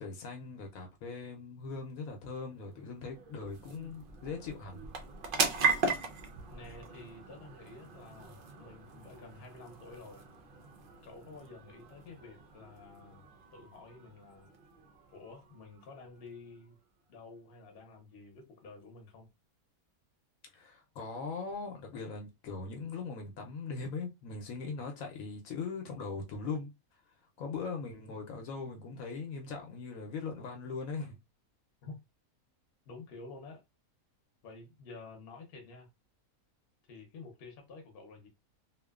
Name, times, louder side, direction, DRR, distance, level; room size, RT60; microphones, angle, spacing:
voice 1, 0.0-4.9 20.5-31.2, left 4 dB, 75° left, 1.0 m, -40 dB
sound 1, 1.9-16.8, right 4 dB, 80° right, 0.4 m, -39 dB
voice 2, 6.5-10.2 11.0-13.2 13.5-14.5 15.1-16.8 17.1-19.3 31.8-32.0 32.9-33.6 34.4-35.9 36.9-38.3, left 3 dB, 50° left, 0.8 m, -50 dB
2.8 x 2.1 x 2.3 m
omnidirectional pair, 1.5 m